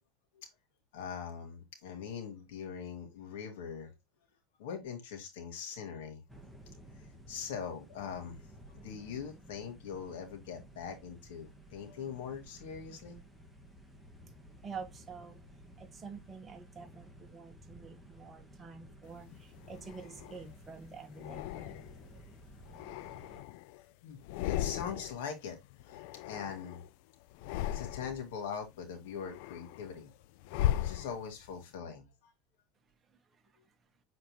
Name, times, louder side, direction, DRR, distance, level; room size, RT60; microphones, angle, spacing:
voice 1, 0.9-3.9 4.6-6.2 7.3-13.2 24.0-26.8 27.7-30.1 30.8-32.3, left 7 dB, 85° left, 2.3 m, -42 dB
sound 1, 6.3-23.4, equal, ahead, 1.3 m, -55 dB
voice 2, 14.6-15.4 15.8-21.9 33.3-33.4, right 5 dB, 20° right, 1.3 m, -48 dB
sound 2, 19.3-20.5 21.2-22.1 22.6-23.8 24.2-25.3 25.5-26.9 27.3-28.3 28.8-31.6, left 13 dB, 65° left, 0.3 m, -37 dB
7.0 x 4.2 x 3.1 m
supercardioid pair, 150°, 0 cm